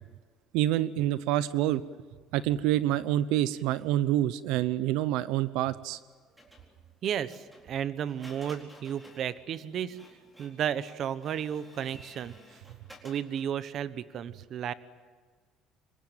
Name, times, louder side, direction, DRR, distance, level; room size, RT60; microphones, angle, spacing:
voice 1, 0.5-1.8 2.3-6.0, right 13 dB, 80° right, 16 dB, 0.8 m, -27 dB
Printer, 6.4-13.6, left 1 dB, 5° right, 4.2 m, -54 dB
voice 2, 7.0-10.0 10.4-12.6 13.0-14.7, right 9 dB, 40° right, 14 dB, 1.1 m, -33 dB
27.0 x 23.0 x 9.2 m, 1.5 s
cardioid pair, 170°, 0 cm